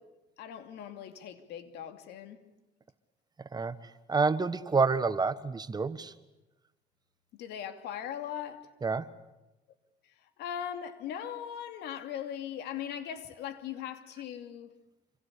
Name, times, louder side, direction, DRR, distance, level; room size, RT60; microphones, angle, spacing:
voice 1, 0.4-2.4 7.4-8.7 10.0-14.7, left 9 dB, 80° left, 8 dB, 2.8 m, -39 dB
voice 2, 3.4-3.7 4.1-6.1 8.8-9.1, right 4 dB, 25° right, 13 dB, 1.4 m, -28 dB
26.5 x 25.5 x 8.5 m, 1.0 s
cardioid pair, 110°, 17 cm